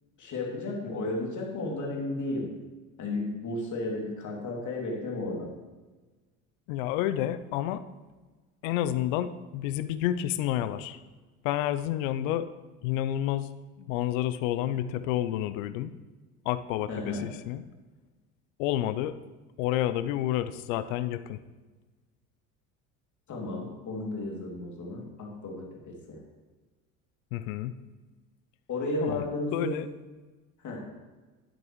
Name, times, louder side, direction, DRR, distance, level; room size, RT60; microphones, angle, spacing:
voice 1, 0.2-2.5 3.0-5.5 16.9-17.3 23.3-26.2 28.7-29.8 30.6-30.8, left 2 dB, 45° left, -1 dB, 2.8 m, -33 dB
voice 2, 6.7-7.8 8.6-11.0 11.4-12.5 12.8-13.5 13.8-15.9 16.4-17.6 18.6-19.2 19.6-21.4 27.3-27.8 29.0-29.9, left 12 dB, 70° left, 13 dB, 0.7 m, -30 dB
11.0 x 9.2 x 3.2 m, 1.3 s
hypercardioid pair, 65°, 41 cm